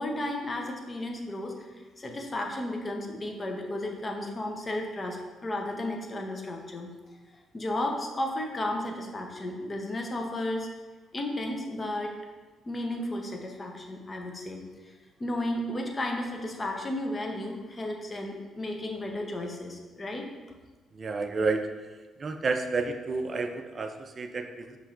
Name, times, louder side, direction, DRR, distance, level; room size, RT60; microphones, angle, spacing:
voice 1, 0.0-6.9 7.5-10.7 11.1-12.2 12.7-20.3, left 1 dB, 30° left, 2 dB, 0.6 m, -33 dB
voice 2, 20.9-21.6 22.2-24.8, right 3 dB, 40° right, 6 dB, 0.4 m, -30 dB
5.6 x 3.0 x 2.5 m, 1.3 s
cardioid pair, 90°, 0 cm